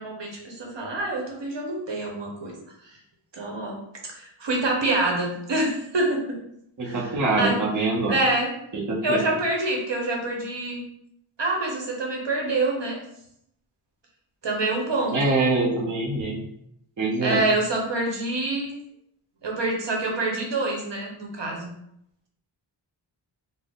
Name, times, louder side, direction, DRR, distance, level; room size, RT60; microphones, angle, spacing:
voice 1, 0.0-2.5 3.3-3.8 4.2-6.4 6.8-7.1 7.4-7.6 8.1-8.5 9.0-10.8 11.4-13.0 14.4-15.4 17.2-18.7 19.4-21.7, right 2 dB, 60° right, 0 dB, 1.0 m, -26 dB
voice 2, 6.8-8.2 8.7-9.2 15.1-16.5 17.0-17.4, right 3 dB, 40° right, -3 dB, 0.7 m, -24 dB
3.9 x 2.1 x 3.5 m, 0.75 s
wide cardioid pair, 70°, 48 cm